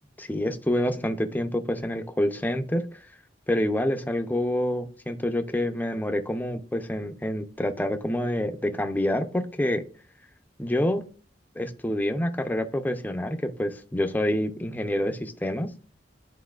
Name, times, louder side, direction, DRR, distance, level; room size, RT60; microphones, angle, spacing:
voice 1, 0.2-2.8 3.5-9.8 10.6-11.0 11.6-15.7, left 1 dB, 10° left, 7 dB, 0.5 m, -27 dB
11.5 x 4.1 x 2.4 m, 0.40 s
head